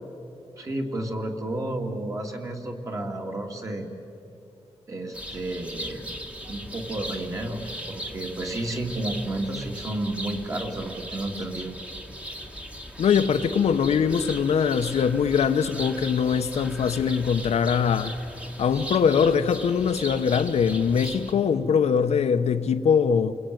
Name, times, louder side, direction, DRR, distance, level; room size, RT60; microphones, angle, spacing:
voice 1, 0.6-3.9 4.9-6.0 6.5-11.7, right 1 dB, 30° right, 2.6 m, -31 dB
sound 1, 5.1-21.3, equal, 10° right, 1.7 m, -38 dB
voice 2, 13.0-18.2 18.6-23.3, left 7 dB, 80° left, 1.1 m, -22 dB
29.0 x 21.5 x 9.4 m
wide cardioid pair, 155°, 11 cm